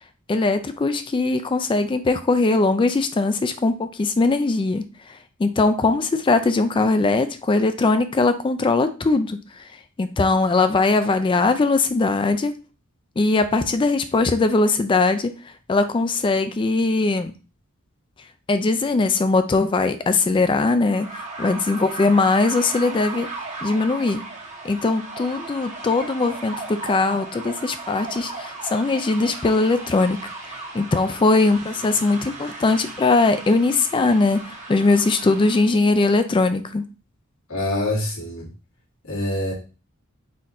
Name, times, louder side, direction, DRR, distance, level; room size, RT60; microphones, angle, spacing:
voice 1, 0.3-9.7 10.0-12.5 13.2-15.3 15.7-17.3 18.5-23.3 23.6-24.2 24.6-30.2 30.5-36.8, left 3 dB, 25° left, 10 dB, 0.3 m, -20 dB
sound 1, 20.9-35.7, right 3 dB, 35° right, 1.2 m, -36 dB
voice 2, 37.5-38.5 39.0-39.5, left 1 dB, 80° left, -3 dB, 1.8 m, -25 dB
4.2 x 2.6 x 4.1 m, 0.33 s
head